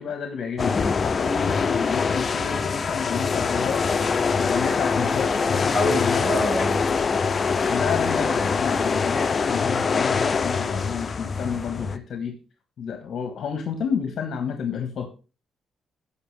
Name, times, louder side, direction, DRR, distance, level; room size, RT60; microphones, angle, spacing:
voice 1, 0.0-3.9 4.4-6.3 7.4-12.3 12.8-15.1, left 6 dB, 60° left, 6 dB, 1.3 m, -30 dB
sound 1, 0.6-12.0, left 5 dB, 35° left, 0.6 m, -24 dB
voice 2, 5.7-6.8, left 1 dB, 15° left, -1 dB, 5.0 m, -25 dB
14.5 x 5.7 x 3.3 m, 0.32 s
cardioid pair, 90°, 0 cm